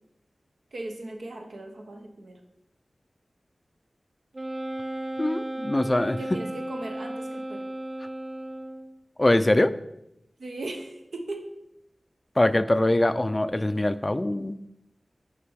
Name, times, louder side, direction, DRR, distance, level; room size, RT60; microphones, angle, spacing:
voice 1, 0.7-2.4 6.0-7.6 10.4-11.5, right 2 dB, 85° right, 2 dB, 1.0 m, -38 dB
Wind instrument woodwind instrument, 4.3-9.0, right 1 dB, 50° right, 0.7 m, -35 dB
voice 2, 5.2-6.2 9.2-9.7 12.4-14.6, left 1 dB, 25° left, 13 dB, 0.3 m, -23 dB
6.7 x 5.2 x 4.7 m, 0.85 s
wide cardioid pair, 75°, 0 cm